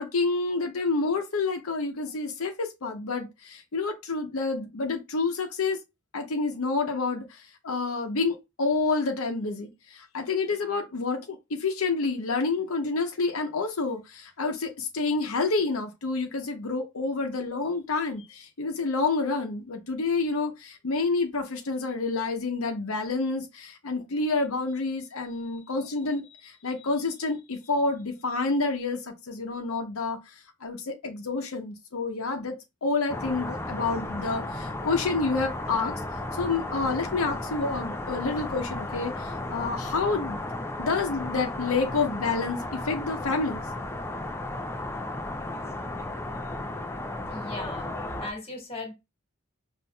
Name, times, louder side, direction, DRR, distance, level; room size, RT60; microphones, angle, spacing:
voice 1, 0.0-5.8 6.1-32.5 32.8-36.0 36.4-40.4 40.8-43.6, left 3 dB, 85° left, 0.8 m, -28 dB
sound 1, 33.1-48.3, left 2 dB, 10° left, 0.4 m, -34 dB
voice 2, 47.3-48.9, left 2 dB, 30° left, 1.5 m, -38 dB
5.3 x 2.6 x 2.2 m
head